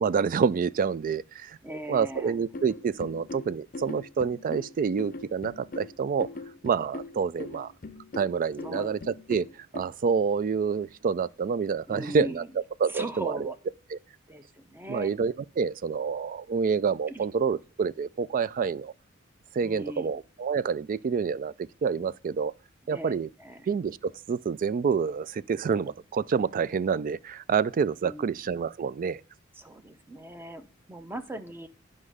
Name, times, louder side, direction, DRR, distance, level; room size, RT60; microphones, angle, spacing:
voice 1, 0.0-1.6 1.9-6.3 6.6-7.7 8.1-12.4 12.8-13.5 13.9-14.0 14.9-18.9 19.5-22.5 22.9-23.3 23.7-29.2, right 6 dB, 40° right, 0.3 m, -28 dB
voice 2, 1.6-2.4 8.6-8.9 11.9-12.5 12.9-13.6 14.3-15.1 17.1-17.3 19.6-20.1 22.9-23.1 23.4-23.7 28.0-28.3 29.5-31.7, right 1 dB, 10° right, 0.7 m, -39 dB
sound 1, 2.1-9.8, left 2 dB, 40° left, 0.6 m, -41 dB
9.8 x 5.3 x 4.8 m
head